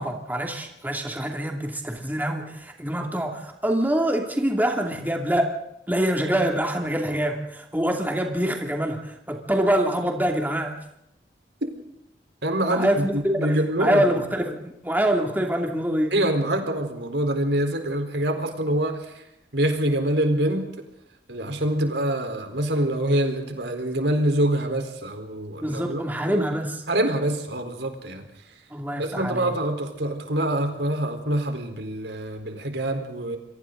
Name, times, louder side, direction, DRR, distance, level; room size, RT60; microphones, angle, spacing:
voice 1, 0.0-5.5 5.9-10.8 12.6-16.1 25.6-26.8 28.7-29.5, right 1 dB, 10° right, 2 dB, 2.6 m, -25 dB
voice 2, 12.4-14.0 16.1-19.2 19.5-20.7 21.3-26.4 26.9-28.2 29.0-33.4, right 1 dB, 85° right, 5 dB, 4.2 m, -25 dB
29.0 x 24.0 x 3.9 m, 0.84 s
head